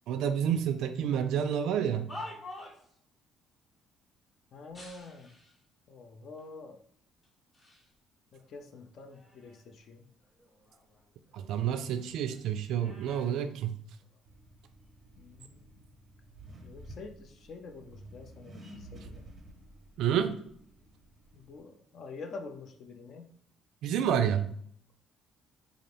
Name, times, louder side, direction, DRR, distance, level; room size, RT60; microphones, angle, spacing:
voice 1, 0.1-2.1 11.3-13.8 20.0-20.4 23.8-24.5, right 9 dB, 70° right, 9 dB, 0.3 m, -29 dB
sound 1, 2.0-3.0 4.7-5.6 6.4-6.5 7.2-7.9 8.3-9.8 10.2-11.8 12.1-14.2 15.0-15.3, left 2 dB, 15° left, 0.8 m, -49 dB
voice 2, 4.5-5.4 5.9-6.8 8.3-10.1 15.2-15.9 16.6-19.3 21.3-23.3, left 3 dB, 45° left, 6 dB, 0.4 m, -47 dB
Accelerating revving vroom, 14.3-21.6, right 1 dB, 25° right, 0.6 m, -52 dB
3.9 x 2.5 x 3.2 m, 0.66 s
cardioid pair, 165°, 0 cm